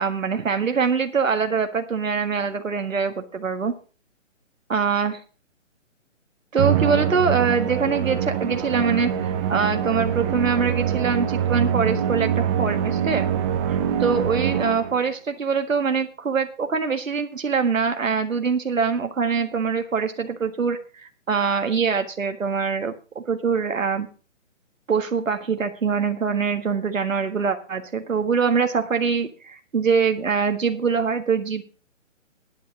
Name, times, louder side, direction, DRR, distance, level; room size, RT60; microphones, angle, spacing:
voice 1, 0.0-3.7 4.7-5.2 6.5-13.3 13.7-24.1 24.9-31.6, right 5 dB, 90° right, 6 dB, 1.7 m, -24 dB
Musical instrument, 6.6-15.1, right 8 dB, 20° right, 1.2 m, -24 dB
11.0 x 9.3 x 5.3 m, 0.36 s
hypercardioid pair, 150°, 38 cm